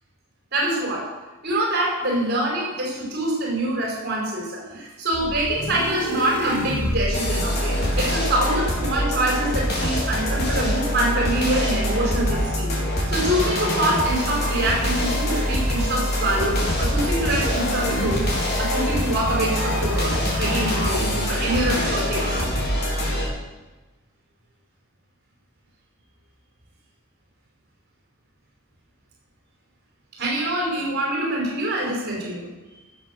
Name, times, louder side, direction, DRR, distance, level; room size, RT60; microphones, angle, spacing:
voice 1, 0.5-1.1 1.4-18.3 18.6-22.5 30.2-32.5, right 1 dB, 50° right, -3 dB, 5.1 m, -25 dB
sound 1, 5.1-23.3, equal, 50° left, 3.8 m, -24 dB
17.0 x 7.8 x 6.8 m, 1.1 s
head